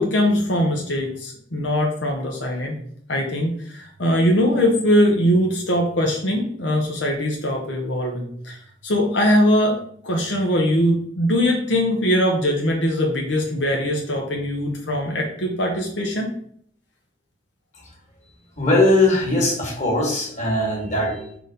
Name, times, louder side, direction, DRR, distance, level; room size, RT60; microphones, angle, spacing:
voice 1, 0.0-2.7 3.1-9.8 10.0-16.3, equal, 85° left, 0 dB, 1.1 m, -21 dB
voice 2, 18.6-21.4, left 2 dB, 40° left, -2 dB, 2.2 m, -20 dB
4.8 x 4.0 x 5.3 m, 0.64 s
head